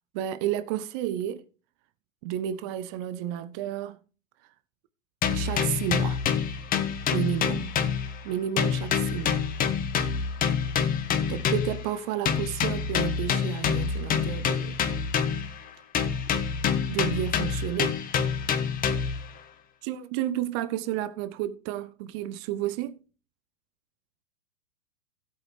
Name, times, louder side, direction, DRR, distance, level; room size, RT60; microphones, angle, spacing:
voice 1, 0.1-1.4 2.2-4.0 5.3-6.2 7.1-7.7 8.2-9.4 11.3-14.8 16.9-18.0 19.8-22.9, right 11 dB, 20° right, 0.4 m, -31 dB
sound 1, 5.2-8.3 8.6-11.8 12.3-15.6 15.9-19.3, left 7 dB, 20° left, 1.5 m, -27 dB
16.0 x 8.4 x 3.3 m
figure-of-eight pair, 105°, 40 cm